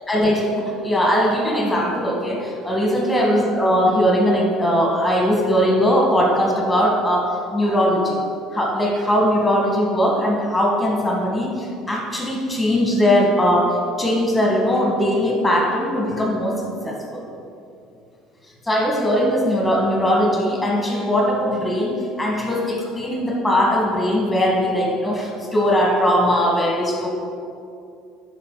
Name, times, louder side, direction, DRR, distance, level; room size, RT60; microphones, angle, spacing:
voice 1, 0.1-8.2 8.5-17.2 18.6-27.1, equal, 5° left, -2 dB, 1.9 m, -20 dB
11.5 x 5.0 x 4.1 m, 2.6 s
cardioid pair, 130°, 0 cm